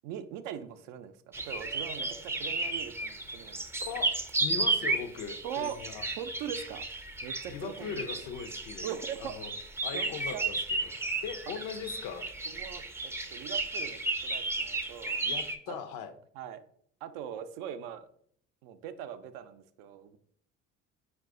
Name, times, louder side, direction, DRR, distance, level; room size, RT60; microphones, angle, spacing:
voice 1, 0.0-3.6 3.9-4.1 5.4-5.8 6.2-6.8 7.2-8.3 8.8-9.3 9.9-10.4 12.5-15.2 15.7-15.8 16.3-16.6 17.0-18.1 18.6-20.2, right 9 dB, 70° right, 10 dB, 0.5 m, -41 dB
sound 1, 1.3-15.6, right 2 dB, 5° right, 0.5 m, -34 dB
voice 2, 3.8-6.0 7.5-9.5 9.8-10.9 11.2-12.3 15.2-16.1, left 7 dB, 65° left, 10 dB, 0.6 m, -40 dB
4.6 x 2.4 x 3.7 m, 0.62 s
hypercardioid pair, 60°, 34 cm